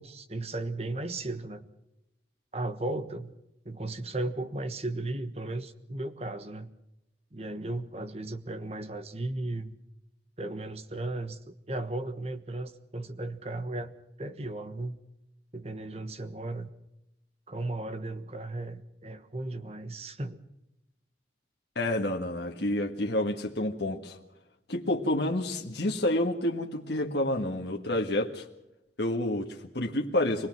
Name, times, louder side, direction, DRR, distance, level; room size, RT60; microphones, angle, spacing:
voice 1, 0.0-1.7 2.5-3.3 3.6-6.7 7.3-9.7 10.4-15.0 15.5-16.7 17.5-20.4, right 2 dB, 35° right, 10 dB, 1.3 m, -35 dB
voice 2, 21.8-24.2 24.7-28.5 29.0-30.5, left 1 dB, 70° left, 1 dB, 1.7 m, -29 dB
24.5 x 18.5 x 6.1 m, 0.89 s
head